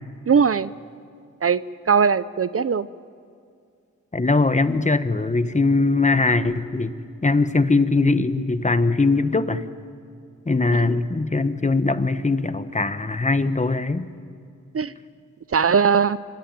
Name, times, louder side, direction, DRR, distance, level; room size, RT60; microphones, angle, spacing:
voice 1, 0.3-0.7 1.4-1.6 1.9-2.9 10.7-10.8 14.7-14.9 15.5-16.2, right 6 dB, 45° right, 16 dB, 0.6 m, -19 dB
voice 2, 4.1-6.9 7.2-9.6 10.5-14.1, left 3 dB, 25° left, 11 dB, 1.2 m, -21 dB
25.5 x 24.5 x 9.1 m, 2.3 s
wide cardioid pair, 85°, 31 cm